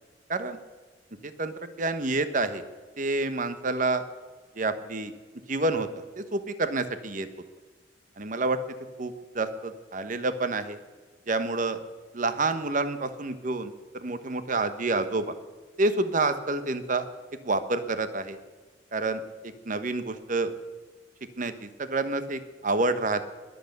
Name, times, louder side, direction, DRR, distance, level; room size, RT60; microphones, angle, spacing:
voice 1, 1.2-2.6 3.0-4.0 4.6-5.1 5.5-7.3 8.2-8.6 9.0-10.8 11.3-11.8 12.1-15.3 15.8-17.1 17.4-18.4 18.9-19.2 19.7-20.5 21.4-23.2, right 3 dB, 45° right, 11 dB, 1.0 m, -28 dB
21.5 x 8.0 x 6.7 m, 1.4 s
head